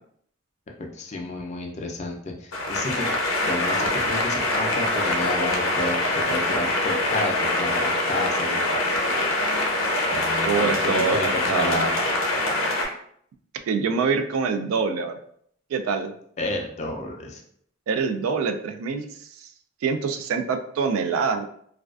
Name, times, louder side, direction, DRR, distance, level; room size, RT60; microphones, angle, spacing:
voice 1, 0.9-3.0 3.5-8.8 10.1-11.9 16.4-17.4, left 2 dB, 35° left, 2 dB, 0.4 m, -31 dB
sound 1, 2.5-12.9, left 1 dB, 80° left, 0.6 m, -24 dB
voice 2, 10.5-11.2 11.5-11.8 13.7-15.1 15.7-16.1 17.9-19.3 19.8-21.4, right 5 dB, 90° right, 9 dB, 0.3 m, -25 dB
2.3 x 2.2 x 2.3 m, 0.65 s
head